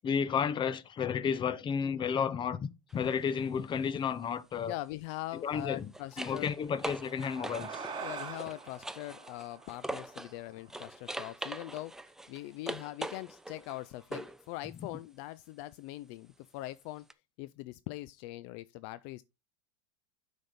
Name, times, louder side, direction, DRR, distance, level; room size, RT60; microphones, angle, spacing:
voice 1, 0.0-4.7 5.4-5.9 6.2-7.9, left 7 dB, 30° left, 0.7 m, -32 dB
sound 1, 2.9-3.1 5.4-10.4 10.7-14.4 17.1-17.2, right 1 dB, 5° right, 0.4 m, -42 dB
voice 2, 4.6-6.5 8.0-12.0 12.3-17.0 17.4-19.2, left 17 dB, 55° left, 0.4 m, -42 dB
sound 2, 6.6-11.4, right 5 dB, 30° right, 3.1 m, -45 dB
7.8 x 5.2 x 4.1 m
hypercardioid pair, 100°, 17 cm